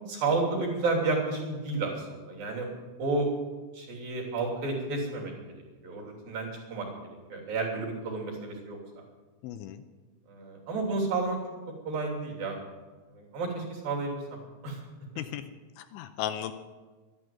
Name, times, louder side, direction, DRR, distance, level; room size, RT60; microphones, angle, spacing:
voice 1, 0.1-2.7 3.0-3.3 3.7-5.3 5.8-6.9 7.3-8.8 10.3-11.4 11.8-12.6 13.1-14.8, right 3 dB, 50° right, -1 dB, 4.5 m, -31 dB
voice 2, 9.4-9.8 15.2-15.4 15.8-16.5, left 10 dB, 80° left, 9 dB, 2.9 m, -35 dB
12.5 x 11.5 x 9.3 m, 1.3 s
omnidirectional pair, 5.6 m